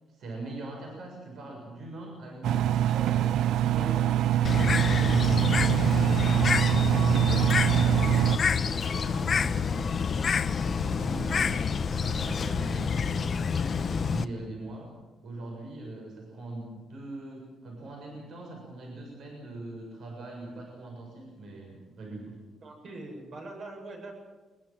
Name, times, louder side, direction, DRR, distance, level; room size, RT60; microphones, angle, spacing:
voice 1, 0.1-4.1 4.4-7.5 7.8-13.5 13.7-14.9 15.2-22.4, right 2 dB, 65° right, 0 dB, 7.1 m, -41 dB
Engine, 2.4-8.4, right 12 dB, 85° right, 0.7 m, -24 dB
voice 2, 3.7-4.3 22.6-24.1, right 2 dB, 50° right, 2 dB, 7.6 m, -42 dB
Bird, 4.4-14.2, left 6 dB, 40° left, 1.0 m, -28 dB
24.0 x 21.5 x 7.7 m, 1.2 s
cardioid pair, 140°, 0 cm